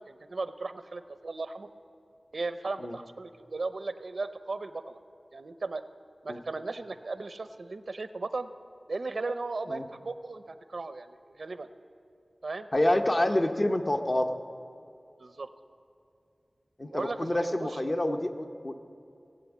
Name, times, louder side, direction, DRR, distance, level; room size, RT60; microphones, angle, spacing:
voice 1, 0.0-1.7 2.3-5.0 5.3-5.8 6.2-8.5 8.9-11.7 12.4-12.7 15.2-15.5 16.9-17.3 17.6-17.7, right 3 dB, 80° right, 11 dB, 0.6 m, -36 dB
voice 2, 12.7-14.4 16.8-18.8, left 1 dB, 40° left, 6 dB, 0.9 m, -27 dB
18.5 x 7.9 x 8.4 m, 2.6 s
wide cardioid pair, 70°, 0 cm